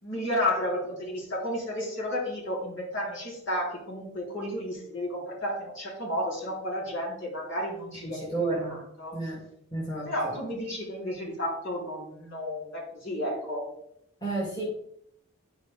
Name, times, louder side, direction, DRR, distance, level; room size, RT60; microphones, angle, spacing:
voice 1, 0.0-8.3 8.7-9.2 10.0-13.7, left 1 dB, 55° left, -5 dB, 3.6 m, -32 dB
voice 2, 8.0-8.7 9.1-9.4 9.7-10.3 14.2-14.6, right 2 dB, 20° left, -6 dB, 2.7 m, -31 dB
12.0 x 5.1 x 3.5 m, 0.74 s
head